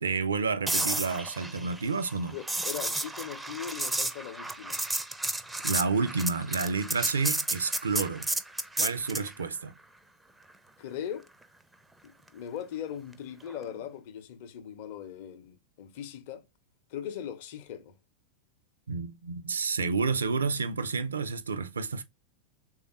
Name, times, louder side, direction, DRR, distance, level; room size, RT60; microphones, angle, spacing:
voice 1, 0.0-2.3 5.6-8.3 8.8-9.7 18.9-22.0, right 4 dB, 70° right, 0.4 m, -30 dB
sound 1, 0.7-9.3 13.5-13.7, right 2 dB, 5° right, 0.4 m, -32 dB
voice 2, 2.3-4.8 10.8-11.3 12.0-16.4 16.9-18.0, left 9 dB, 50° left, 0.6 m, -39 dB
3.4 x 2.4 x 3.9 m
figure-of-eight pair, 90°, 0 cm